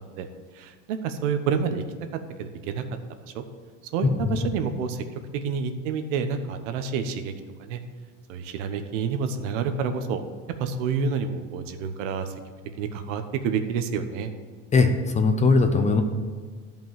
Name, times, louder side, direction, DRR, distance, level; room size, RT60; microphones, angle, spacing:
voice 1, 0.5-1.8 2.4-2.8 3.3-3.4 3.9-5.0 5.3-7.3 7.6-7.8 8.3-10.2 10.6-12.3 12.8-14.3, right 6 dB, 75° right, 8 dB, 1.1 m, -28 dB
voice 2, 14.7-16.0, left 4 dB, 20° left, 7 dB, 0.7 m, -20 dB
12.0 x 5.4 x 7.5 m, 1.5 s
supercardioid pair, 135°, 37 cm